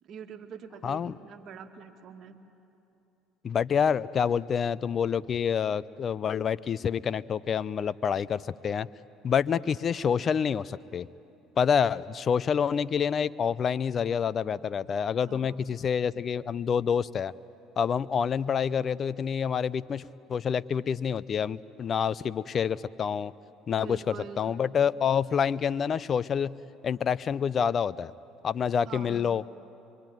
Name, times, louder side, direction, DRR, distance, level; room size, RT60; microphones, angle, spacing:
voice 1, 0.0-2.4 15.3-15.6 23.8-24.6 28.9-29.4, right 6 dB, 55° right, 4 dB, 2.2 m, -44 dB
voice 2, 0.8-1.2 3.4-8.9 9.2-11.1 11.6-17.3 17.8-23.3 23.7-26.6 26.8-28.1 28.4-29.4, left 7 dB, 45° left, 18 dB, 0.6 m, -27 dB
24.0 x 24.0 x 9.2 m, 2.8 s
hypercardioid pair, 70°, 0 cm